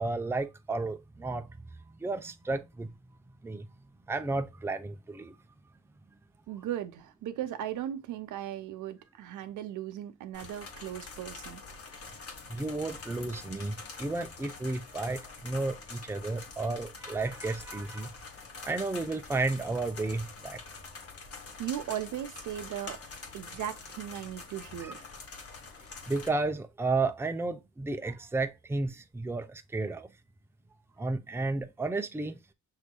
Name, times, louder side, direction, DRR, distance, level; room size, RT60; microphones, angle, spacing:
voice 1, 0.0-1.5 2.0-2.9 3.4-3.7 4.1-5.4 12.5-18.1 18.6-20.6 24.8-24.9 26.1-30.1 31.0-32.5, right 3 dB, 10° right, 0.5 m, -32 dB
voice 2, 6.5-11.6 21.6-23.0 23.3-25.0, right 11 dB, 80° right, 0.7 m, -37 dB
sound 1, 10.3-26.3, left 4 dB, 50° left, 1.2 m, -45 dB
6.5 x 3.0 x 2.2 m
cardioid pair, 90°, 30 cm